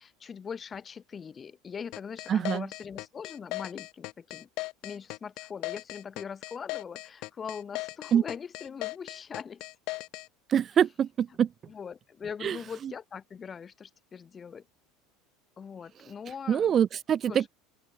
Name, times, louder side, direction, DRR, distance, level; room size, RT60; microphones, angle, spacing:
voice 1, 0.0-4.5 4.8-9.6 11.7-14.7 15.6-16.7 17.3-17.5, left 6 dB, 20° left, 0.8 m, -41 dB
sound 1, 1.9-10.3, left 22 dB, 50° left, 1.2 m, -37 dB
voice 2, 2.3-2.6 8.1-8.2 10.5-11.5 12.4-12.6 16.5-17.5, right 9 dB, 25° right, 0.3 m, -24 dB
open air
cardioid pair, 165°, 0 cm